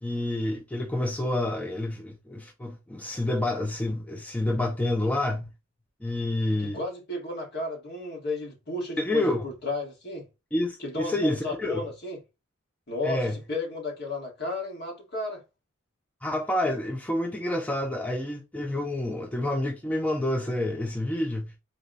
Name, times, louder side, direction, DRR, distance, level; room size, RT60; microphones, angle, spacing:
voice 1, 0.0-5.5 6.0-6.8 9.0-9.4 10.5-11.8 13.0-13.4 16.2-21.5, left 1 dB, 5° left, 0.4 m, -28 dB
voice 2, 6.6-10.3 10.8-12.2 12.9-15.4, left 2 dB, 50° left, 1.5 m, -33 dB
4.0 x 2.3 x 3.8 m
head